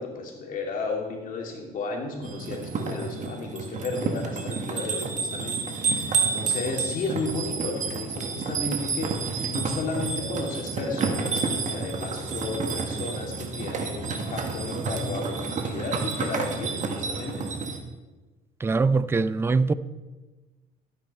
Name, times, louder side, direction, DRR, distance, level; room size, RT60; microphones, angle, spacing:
voice 1, 0.0-17.4, left 3 dB, 55° left, 2.8 m, -34 dB
sound 1, 2.2-17.8, right 4 dB, 45° right, 1.6 m, -30 dB
voice 2, 18.6-19.7, right 4 dB, 15° right, 0.4 m, -22 dB
12.5 x 9.4 x 4.4 m
cardioid pair, 110°, 17 cm